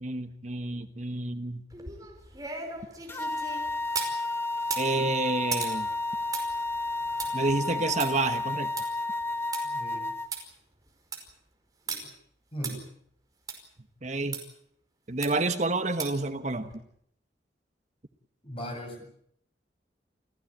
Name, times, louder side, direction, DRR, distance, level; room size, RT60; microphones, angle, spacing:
voice 1, 0.0-1.6 4.8-5.9 7.3-8.7 14.0-14.4 15.1-16.7, right 3 dB, 40° right, 10 dB, 1.2 m, -29 dB
sound 1, 1.7-4.2 4.6-9.6 10.0-10.1 10.3-10.4 10.9-11.3 11.9-12.0 12.6-12.7 13.5-13.6 14.3-14.4 15.2-15.5 16.0-16.3 16.7-16.8, right 5 dB, 20° right, 5.1 m, -38 dB
sound 2, 3.1-10.3, left 2 dB, 15° left, 1.3 m, -31 dB
voice 2, 9.6-10.1 11.9-12.1 12.5-12.8 18.4-19.0, equal, 35° left, 4 dB, 7.6 m, -38 dB
29.0 x 16.0 x 8.9 m, 0.70 s
head